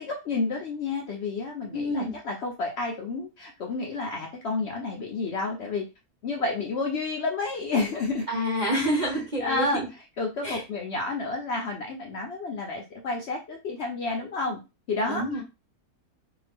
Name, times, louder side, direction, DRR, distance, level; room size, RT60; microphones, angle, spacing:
voice 1, 0.0-5.8 6.2-8.3 9.0-9.8 10.2-14.6 14.9-15.2, left 3 dB, 65° left, 1 dB, 0.6 m, -30 dB
voice 2, 1.7-2.2 8.3-9.7 10.4-10.6 15.1-15.4, equal, 55° right, -2 dB, 0.5 m, -27 dB
2.7 x 2.3 x 3.3 m, 0.27 s
omnidirectional pair, 1.6 m